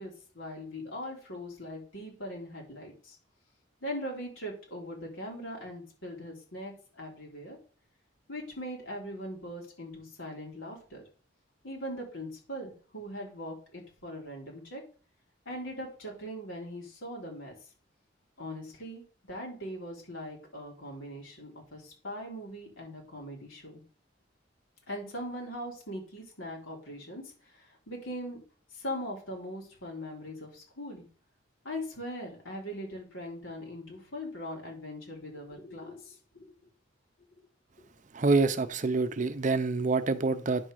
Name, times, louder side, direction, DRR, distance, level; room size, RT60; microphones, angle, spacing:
voice 1, 0.0-3.2 3.8-7.6 8.3-11.0 11.6-14.8 15.5-17.5 18.4-19.0 19.3-23.8 24.9-28.4 28.7-31.1 31.6-36.6 37.8-37.9, equal, 90° left, -1 dB, 3.6 m, -40 dB
voice 2, 38.1-40.7, right 3 dB, 40° right, 12 dB, 0.6 m, -26 dB
9.7 x 3.6 x 6.3 m, 0.40 s
head